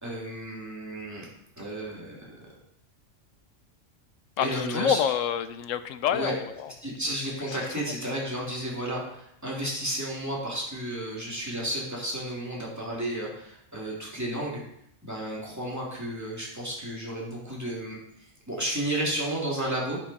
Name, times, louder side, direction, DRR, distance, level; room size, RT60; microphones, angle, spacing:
voice 1, 0.0-1.3 1.6-2.4 4.4-5.0 6.1-6.4 6.8-14.6 15.0-20.0, right 1 dB, 15° right, -4 dB, 2.6 m, -32 dB
voice 2, 4.4-6.7 7.5-7.6, left 8 dB, 85° left, 12 dB, 1.0 m, -27 dB
10.0 x 5.8 x 4.2 m, 0.75 s
omnidirectional pair, 1.3 m